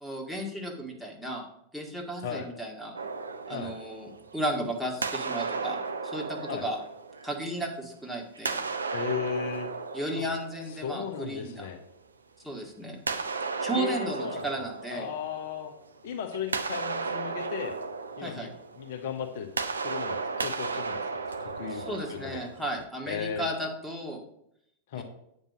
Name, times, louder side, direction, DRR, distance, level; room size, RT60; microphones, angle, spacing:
voice 1, 0.0-1.5 1.7-2.9 3.5-6.8 7.2-8.7 9.9-11.7 12.4-13.0 13.6-15.1 18.2-18.5 21.7-24.2 25.0-25.1, right 1 dB, ahead, -1 dB, 2.1 m, -34 dB
sound 1, 2.9-4.6 5.0-7.8 8.3-11.2 13.1-15.8 16.2-22.8, right 4 dB, 75° right, 0.6 m, -35 dB
voice 2, 8.9-9.7 10.2-10.3 10.7-11.8 13.7-14.6 14.9-15.7 16.0-17.8 18.2-19.5 19.8-22.5 23.0-23.5 24.9-25.0, left 7 dB, 55° left, 5 dB, 1.0 m, -36 dB
8.8 x 5.3 x 6.3 m, 0.75 s
figure-of-eight pair, 90°, 0 cm